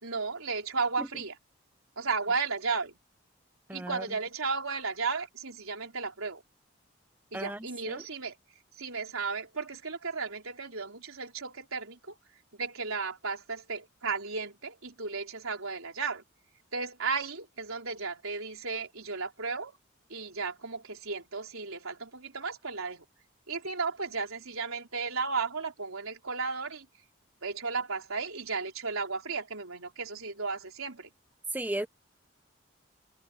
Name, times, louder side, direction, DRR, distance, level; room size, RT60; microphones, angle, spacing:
voice 1, 0.0-1.4 2.0-3.0 3.7-6.4 7.3-8.4 8.8-12.1 12.6-16.2 16.7-19.7 20.1-23.0 23.5-26.9 27.4-31.1, right 4 dB, 90° right, 4.3 m, -34 dB
voice 2, 3.7-4.1 7.3-8.0 31.5-31.9, right 1 dB, 10° right, 0.7 m, -35 dB
head